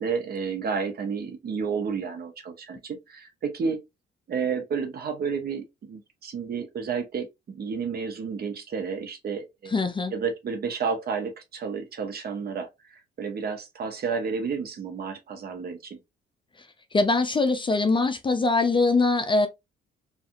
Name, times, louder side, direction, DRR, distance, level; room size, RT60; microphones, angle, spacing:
voice 1, 0.0-3.8 4.3-9.8 10.1-16.0, right 5 dB, 50° right, 0.8 m, -31 dB
voice 2, 9.7-10.1 16.9-19.5, left 3 dB, 25° left, 0.4 m, -22 dB
2.7 x 2.5 x 2.4 m
cardioid pair, 90°, 20 cm